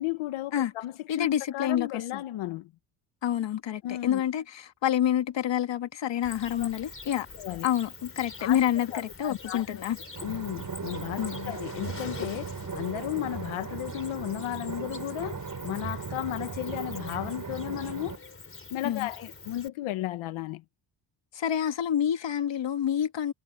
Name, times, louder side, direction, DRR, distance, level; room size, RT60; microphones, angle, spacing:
voice 1, 0.0-2.7 3.8-4.2 6.6-6.7 7.4-7.7 8.4-8.6 8.9-9.7 10.2-18.2 18.7-20.6, left 14 dB, 85° left, 1.5 m, -34 dB
voice 2, 1.1-2.2 3.2-7.3 7.6-10.0 11.2-11.5 18.8-19.1 21.3-23.3, left 10 dB, 65° left, 2.0 m, -28 dB
Cricket, 6.2-19.7, left 4 dB, 25° left, 4.4 m, -45 dB
sound 1, 10.2-18.2, right 5 dB, 40° right, 5.6 m, -38 dB
cardioid pair, 70°, 47 cm